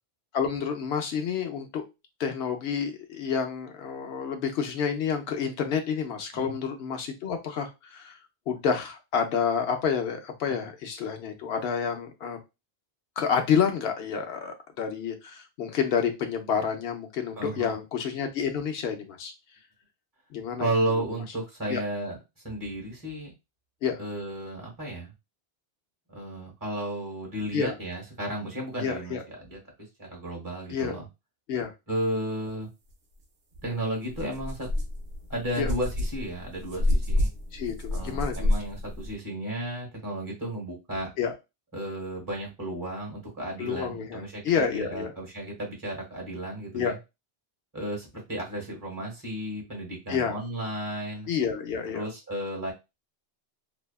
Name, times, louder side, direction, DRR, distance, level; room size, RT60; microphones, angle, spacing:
voice 1, 0.3-1.8 2.2-8.2 8.5-12.4 13.2-19.3 20.3-20.7 21.7-21.8 23.8-24.0 27.5-27.7 28.8-29.2 30.7-31.0 31.5-31.7 35.6-35.7 37.5-38.5 41.2-41.3 43.6-45.1 46.7-46.9 50.1-50.3 51.3-52.0, left 7 dB, 80° left, 0.9 m, -29 dB
voice 2, 17.4-17.7 20.6-22.2 22.4-23.3 24.0-25.1 26.1-29.6 30.0-31.1 31.9-32.7 33.6-34.7 35.3-37.3 37.9-41.1 41.7-47.0 47.7-51.3 51.9-52.7, right 1 dB, 20° right, 1.2 m, -33 dB
sound 1, 33.5-33.7 34.1-39.1, left 1 dB, 60° right, 0.7 m, -29 dB
2.7 x 2.2 x 2.2 m
omnidirectional pair, 1.1 m